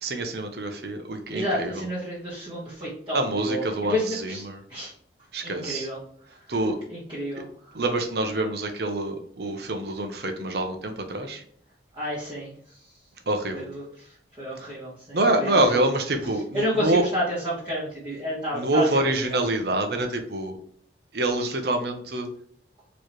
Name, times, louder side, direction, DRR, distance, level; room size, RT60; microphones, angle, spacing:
voice 1, 0.0-1.8 3.1-4.6 5.3-5.9 6.5-6.8 7.7-11.4 13.3-13.6 15.1-17.0 18.5-20.6 21.1-22.3, right 2 dB, 60° right, 5 dB, 0.8 m, -26 dB
voice 2, 1.3-3.6 3.9-4.4 4.7-4.9 5.4-6.0 6.9-7.5 11.9-12.5 13.5-13.8 14.4-15.8 16.5-19.1, equal, 25° right, -10 dB, 1.4 m, -30 dB
4.7 x 3.1 x 3.0 m, 0.63 s
head